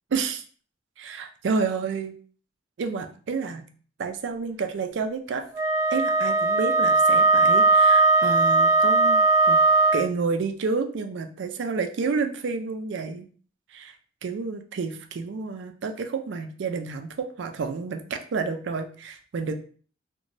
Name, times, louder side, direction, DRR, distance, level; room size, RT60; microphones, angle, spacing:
voice 1, 0.1-0.4 1.0-2.1 2.8-3.6 4.0-5.5 5.9-9.2 9.5-9.6 9.9-13.3 13.7-14.0 14.2-19.5, right 4 dB, 75° right, 6 dB, 0.4 m, -30 dB
Wind instrument woodwind instrument, 5.5-10.1, right 3 dB, 20° right, 0.5 m, -19 dB
2.6 x 2.2 x 2.9 m, 0.43 s
head